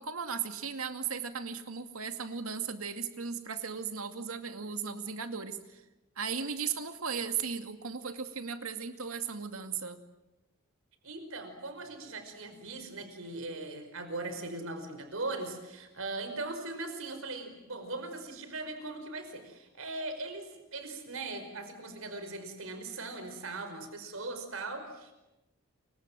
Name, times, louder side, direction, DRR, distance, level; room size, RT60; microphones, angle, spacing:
voice 1, 0.0-5.8 6.2-10.0, right 6 dB, 85° right, 8 dB, 2.3 m, -36 dB
voice 2, 11.0-25.1, right 2 dB, 70° right, 8 dB, 5.3 m, -39 dB
28.5 x 24.5 x 7.6 m, 1.0 s
head